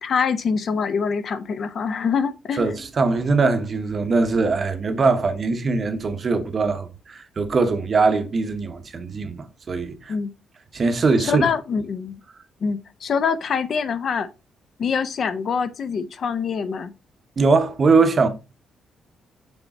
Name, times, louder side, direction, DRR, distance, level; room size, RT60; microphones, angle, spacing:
voice 1, 0.0-2.7 10.1-10.3 11.2-12.2 12.6-14.3 14.8-16.9, left 6 dB, 45° left, 0.4 m, -24 dB
voice 2, 2.6-10.1 10.7-11.4 17.4-18.3, right 4 dB, 30° right, 0.7 m, -21 dB
7.0 x 3.3 x 4.0 m
cardioid pair, 170°, 0 cm